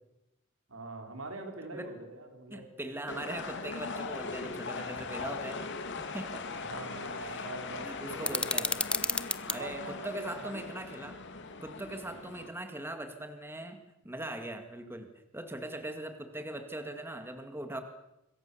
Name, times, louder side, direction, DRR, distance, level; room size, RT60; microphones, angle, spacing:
voice 1, 0.7-2.7 5.3-5.4 6.7-8.8 9.6-10.6 14.8-15.0, right 2 dB, 75° right, 4 dB, 4.6 m, -44 dB
voice 2, 2.5-5.7 6.0-6.4 7.2-7.5 7.8-8.7 9.5-11.2 11.6-13.8 14.0-17.8, right 1 dB, 10° right, 7 dB, 2.0 m, -40 dB
sound 1, 3.1-12.5, left 4 dB, 60° left, 2.6 m, -40 dB
sound 2, 8.2-9.6, left 2 dB, 5° left, 0.9 m, -31 dB
26.0 x 22.0 x 7.1 m, 0.92 s
head